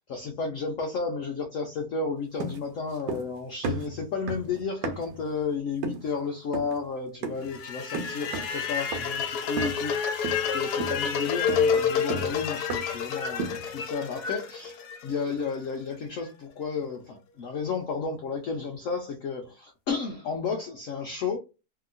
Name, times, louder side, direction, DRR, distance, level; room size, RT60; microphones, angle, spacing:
voice 1, 0.1-21.4, left 5 dB, 85° left, 0.7 m, -32 dB
sound 1, 2.4-3.4 3.6-5.2 5.8-6.1 6.5-6.8 7.2-7.5 7.9-8.6 8.9-9.2 9.6-9.9 10.2-10.5 10.8-13.0 13.4-13.7, right 5 dB, 80° right, 1.4 m, -34 dB
sound 2, 7.5-15.6, left 7 dB, 70° left, 1.0 m, -29 dB
2.8 x 2.8 x 2.4 m
omnidirectional pair, 2.0 m